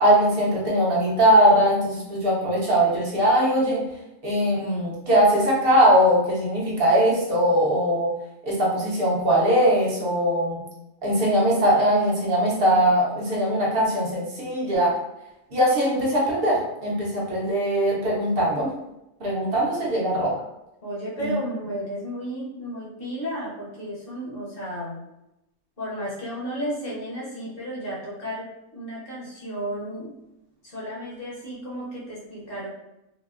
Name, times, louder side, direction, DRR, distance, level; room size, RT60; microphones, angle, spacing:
voice 1, 0.0-3.8 4.2-8.1 8.4-10.6 11.0-15.0 15.5-18.7 19.2-20.3 21.2-21.3, equal, 50° right, -4 dB, 0.9 m, -21 dB
voice 2, 20.8-25.0 25.8-30.1 30.6-32.7, equal, 50° left, -6 dB, 1.1 m, -33 dB
3.9 x 2.0 x 2.4 m, 0.89 s
omnidirectional pair, 1.3 m